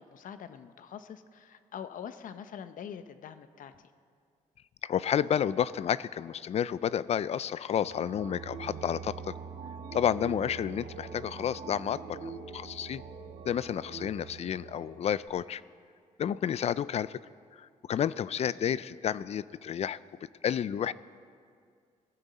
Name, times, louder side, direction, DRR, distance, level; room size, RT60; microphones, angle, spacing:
voice 1, 0.0-3.9 13.9-14.1, left 8 dB, 70° left, 11 dB, 0.7 m, -44 dB
voice 2, 4.8-9.4 9.9-13.0 13.4-15.6 16.2-17.2 17.6-20.0 20.4-20.9, left 9 dB, 50° left, 18 dB, 0.4 m, -31 dB
sound 1, 7.7-15.3, right 6 dB, 70° right, 1.2 m, -44 dB
19.0 x 15.0 x 4.1 m, 2.2 s
cardioid pair, 115°, 14 cm